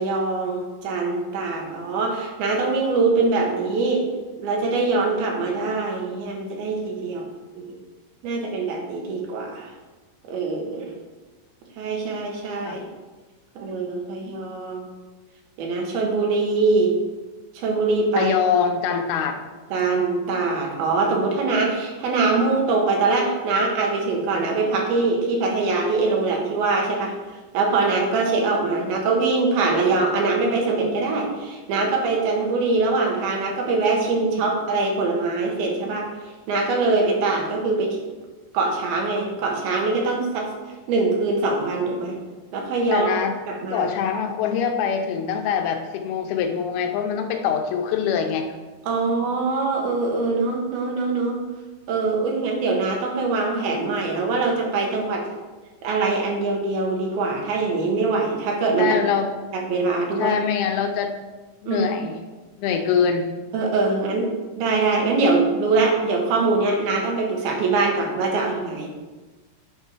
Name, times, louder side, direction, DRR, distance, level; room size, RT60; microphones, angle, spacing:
voice 1, 0.0-4.1 4.4-7.3 7.6-7.7 8.2-9.7 10.3-10.9 11.8-12.8 13.6-14.9 15.6-16.9 17.5-18.3 19.7-27.2 27.5-36.1 36.5-38.0 38.5-40.5 40.9-42.2 42.5-43.1 43.5-43.9 48.9-51.4 51.9-55.3 55.8-58.9 59.5-60.4 61.7-61.8 63.5-68.9, right 3 dB, 80° right, 0 dB, 3.2 m, -23 dB
voice 2, 18.2-19.4 42.9-43.3 43.7-48.5 58.8-59.3 60.2-61.2 61.6-62.2 62.6-63.3, left 7 dB, 80° left, 5 dB, 2.7 m, -23 dB
9.6 x 4.7 x 5.6 m, 1.2 s
omnidirectional pair, 4.4 m